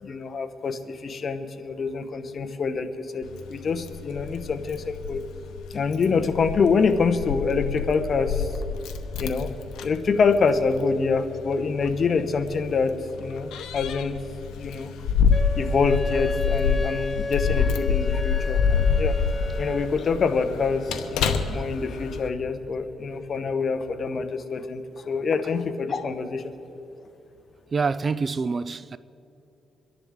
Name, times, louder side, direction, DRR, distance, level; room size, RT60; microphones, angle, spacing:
voice 1, 0.0-5.2 5.7-8.5 9.2-9.6 9.8-14.2 14.6-14.9 15.5-19.1 19.6-26.4, left 4 dB, 45° left, 1.0 m, -26 dB
Keys jangling, 3.2-22.3, left 6 dB, 85° left, 0.9 m, -27 dB
Wind instrument woodwind instrument, 15.3-20.0, left 2 dB, 20° left, 0.5 m, -32 dB
voice 2, 27.7-29.0, right 4 dB, 35° right, 0.4 m, -26 dB
25.5 x 11.0 x 3.7 m
cardioid pair, 90°, 0 cm